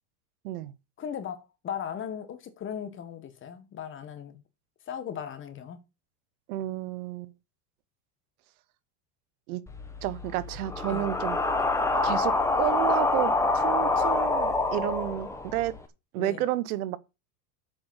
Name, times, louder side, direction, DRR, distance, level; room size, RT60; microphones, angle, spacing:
voice 1, 1.0-4.4 4.9-5.8 10.9-11.1 16.2-16.4, left 8 dB, 25° left, 1.6 m, -37 dB
voice 2, 6.5-7.3 9.5-9.6 10.0-11.4 12.0-15.7 16.1-17.0, right 15 dB, 70° right, 1.0 m, -31 dB
sound 1, 9.7-15.8, left 3 dB, 5° left, 1.2 m, -26 dB
7.7 x 5.3 x 7.2 m
supercardioid pair, 140°, 45 cm